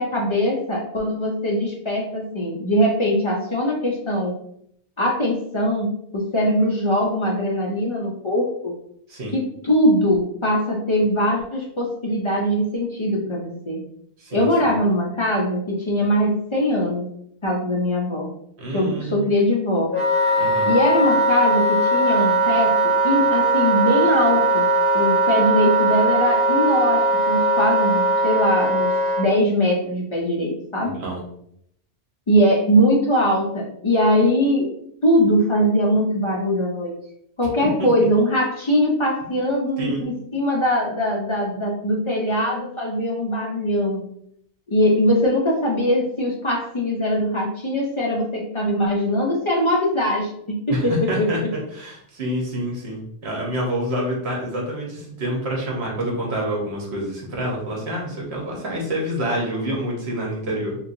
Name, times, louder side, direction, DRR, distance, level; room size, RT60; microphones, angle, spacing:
voice 1, 0.0-4.3 5.0-8.8 9.3-13.8 14.3-17.1 17.4-18.3 18.7-19.9 20.7-24.7 24.9-30.9 32.3-34.7 35.0-37.0 37.4-44.0 44.7-51.5, equal, 50° left, -3 dB, 0.3 m, -21 dB
voice 2, 14.2-14.7 18.6-19.2 20.4-20.7 30.8-31.2 37.8-37.9 39.8-40.0 50.7-51.4 51.7-60.8, equal, 65° right, -2 dB, 1.2 m, -27 dB
Wind instrument woodwind instrument, 19.9-29.3, right 1 dB, 15° left, 0.8 m, -19 dB
3.0 x 2.8 x 2.6 m, 0.69 s
omnidirectional pair, 1.2 m